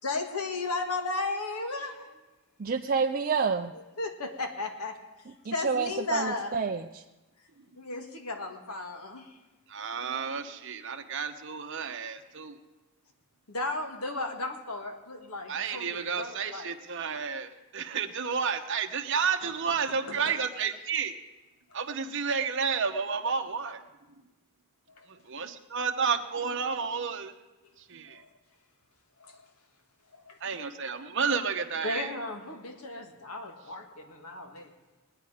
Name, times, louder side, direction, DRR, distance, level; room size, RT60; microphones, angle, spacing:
voice 1, 0.0-2.2 4.0-6.6 7.8-9.4 13.5-16.7 19.9-20.5 25.0-25.1 28.1-28.3 29.2-29.4 30.1-30.4 31.8-34.7, left 3 dB, 85° left, 4 dB, 1.9 m, -35 dB
voice 2, 2.6-3.7 5.4-7.0, right 5 dB, 40° right, 3 dB, 0.5 m, -28 dB
voice 3, 9.7-12.6 15.5-21.1 21.7-23.8 25.1-27.3 27.9-28.2 30.4-32.1, right 6 dB, 55° right, 5 dB, 1.0 m, -31 dB
21.0 x 9.6 x 5.0 m, 1.1 s
head